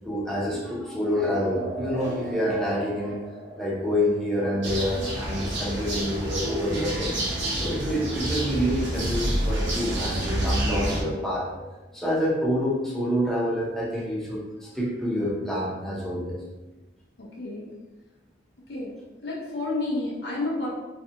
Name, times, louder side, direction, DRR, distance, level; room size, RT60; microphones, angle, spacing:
voice 1, 0.0-3.3 3.6-7.1 7.6-11.6 11.9-16.4, equal, 5° left, -6 dB, 0.6 m, -27 dB
sound 1, 1.5-8.6, right 1 dB, 40° right, 0.6 m, -43 dB
sound 2, 4.6-11.0, right 1 dB, 90° right, 0.7 m, -28 dB
voice 2, 17.2-17.7 18.7-18.9 19.2-20.7, left 2 dB, 65° left, -5 dB, 0.6 m, -30 dB
2.5 x 2.3 x 2.7 m, 1.1 s
head